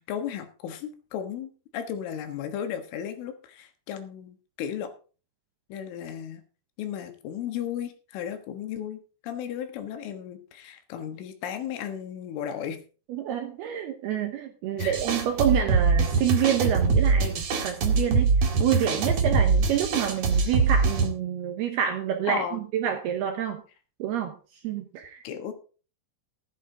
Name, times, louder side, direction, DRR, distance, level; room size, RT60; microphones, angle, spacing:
voice 1, 0.0-4.9 5.7-6.4 6.8-12.8 14.8-15.0 22.3-22.6 25.2-25.5, left 9 dB, 75° left, 7 dB, 3.9 m, -35 dB
voice 2, 13.1-18.3 18.6-23.6 24.0-24.4 24.6-25.2, right 10 dB, 75° right, 6 dB, 2.5 m, -28 dB
sound 1, 14.8-21.1, right 4 dB, 55° right, 2.0 m, -23 dB
15.0 x 10.0 x 3.8 m, 0.36 s
omnidirectional pair, 5.8 m